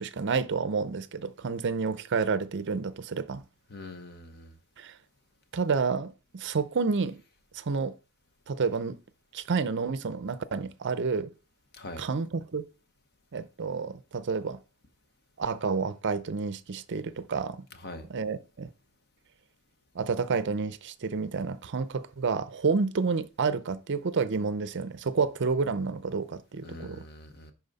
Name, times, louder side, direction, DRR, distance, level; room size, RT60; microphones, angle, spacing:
voice 1, 0.0-3.4 4.8-5.0 5.5-7.2 7.5-7.9 8.5-9.0 9.3-11.3 12.0-12.6 13.3-14.6 15.4-17.7 18.1-18.7 19.9-27.1, right 4 dB, 55° right, 0.6 m, -29 dB
voice 2, 3.7-4.5 11.7-12.0 17.8-18.1 26.6-27.5, left 2 dB, 45° left, 1.1 m, -43 dB
11.0 x 4.1 x 4.0 m
head